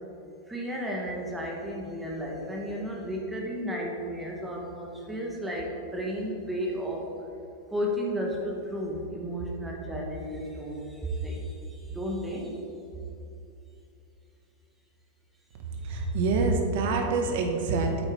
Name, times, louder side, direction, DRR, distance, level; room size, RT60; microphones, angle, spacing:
voice 1, 0.5-7.1 7.7-12.6 15.8-15.9, equal, 10° right, -2 dB, 1.1 m, -33 dB
voice 2, 15.8-18.0, right 3 dB, 60° right, 3 dB, 1.4 m, -26 dB
8.8 x 8.0 x 3.5 m, 2.7 s
supercardioid pair, 140°, 0 cm